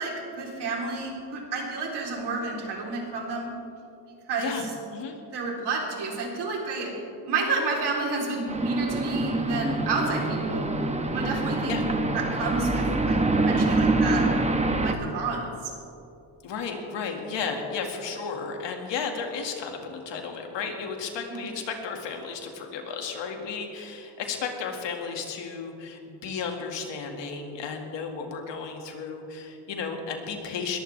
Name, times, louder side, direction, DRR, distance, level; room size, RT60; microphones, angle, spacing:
voice 1, 0.0-3.5 4.3-4.6 5.3-6.9 7.3-10.7 11.1-11.8 12.1-14.2 14.8-15.7 21.3-21.4, right 3 dB, 70° right, -1 dB, 3.6 m, -30 dB
sound 1, 8.5-14.9, right 2 dB, 15° right, 1.1 m, -25 dB
voice 2, 16.4-30.8, left 5 dB, 85° left, 3 dB, 2.1 m, -33 dB
20.5 x 15.0 x 3.4 m, 2.8 s
cardioid pair, 105°, 42 cm